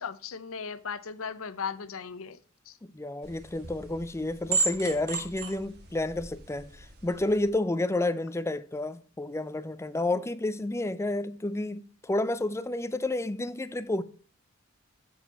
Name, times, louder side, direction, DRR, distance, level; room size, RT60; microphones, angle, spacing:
voice 1, 0.0-2.4 2.7-2.8, left 6 dB, 80° left, 0.7 m, -37 dB
voice 2, 2.9-14.0, left 2 dB, 15° left, 0.5 m, -30 dB
sound 1, 3.2-7.5, right 4 dB, 55° right, 1.7 m, -34 dB
7.4 x 7.3 x 4.1 m
head